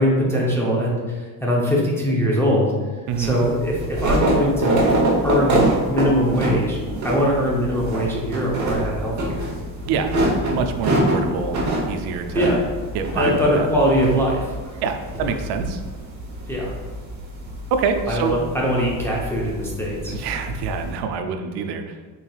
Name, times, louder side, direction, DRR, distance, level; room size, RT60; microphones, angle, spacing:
voice 1, 0.0-2.7 3.2-4.7 5.2-9.5 12.3-12.6 13.1-14.5 15.1-15.3 16.5-16.8 18.1-20.1, equal, 5° left, -5 dB, 0.6 m, -22 dB
sound 1, 3.1-21.0, right 1 dB, 40° right, 1.0 m, -25 dB
voice 2, 9.9-11.6 11.9-12.5 12.9-13.7 14.8-15.8 17.7-18.4 20.1-22.0, right 5 dB, 60° right, 6 dB, 0.5 m, -26 dB
4.0 x 3.9 x 2.4 m, 1.3 s
cardioid pair, 110°, 45 cm